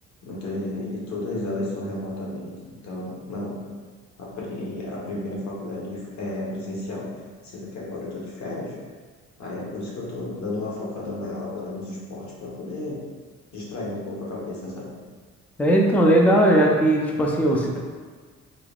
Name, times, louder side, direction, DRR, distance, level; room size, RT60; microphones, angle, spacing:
voice 1, 0.2-3.6 4.2-7.1 7.4-8.7 9.4-13.0 13.5-14.9, left 2 dB, 70° left, -4 dB, 1.1 m, -32 dB
voice 2, 15.6-17.8, right 1 dB, 5° left, -1 dB, 0.4 m, -18 dB
3.8 x 3.3 x 2.4 m, 1.5 s
cardioid pair, 90°, 30 cm